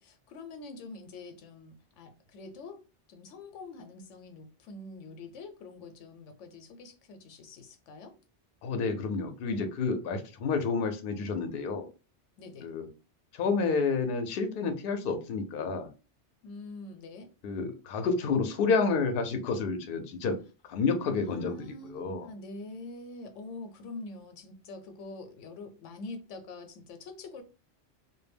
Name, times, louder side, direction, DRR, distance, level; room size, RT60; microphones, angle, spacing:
voice 1, 0.0-8.1 12.4-12.7 16.4-17.3 21.1-27.4, left 3 dB, 85° left, 0.9 m, -45 dB
voice 2, 8.6-11.9 12.6-12.9 13.3-15.9 17.4-20.4 20.7-22.3, left 4 dB, 60° left, 0.6 m, -29 dB
2.2 x 2.0 x 3.3 m
omnidirectional pair, 1.2 m